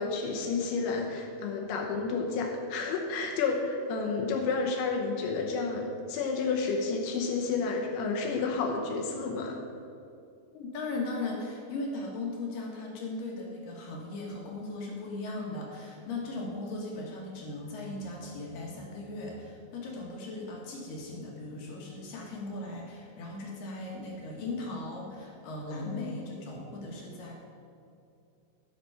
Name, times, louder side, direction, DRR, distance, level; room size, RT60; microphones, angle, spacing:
voice 1, 0.0-9.6 25.8-26.1, left 4 dB, 80° left, 1 dB, 3.3 m, -31 dB
voice 2, 10.5-27.3, left 2 dB, 60° left, -2 dB, 2.5 m, -38 dB
14.0 x 6.0 x 5.6 m, 2.6 s
omnidirectional pair, 5.3 m